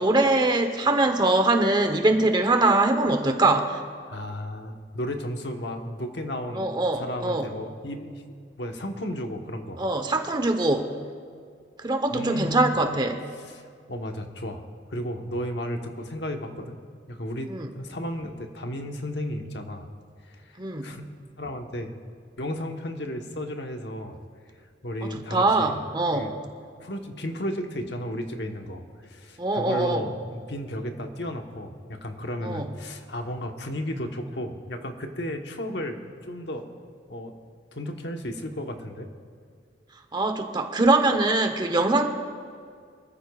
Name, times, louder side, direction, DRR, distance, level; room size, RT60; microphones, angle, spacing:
voice 1, 0.0-3.8 6.5-7.5 9.8-10.9 11.8-13.2 17.5-17.7 20.6-20.9 25.0-26.3 29.4-30.0 32.4-32.7 40.1-42.1, right 2 dB, 25° right, 6 dB, 1.0 m, -23 dB
voice 2, 4.1-8.2 8.6-9.8 12.1-12.8 13.4-13.6 13.9-16.8 17.1-19.9 20.3-20.6 20.8-21.1 21.4-21.9 22.4-24.2 24.8-25.8 26.1-26.4 26.8-36.7 37.1-37.3 37.7-39.1, equal, 70° left, 4 dB, 1.2 m, -34 dB
25.0 x 14.0 x 2.4 m, 2.1 s
head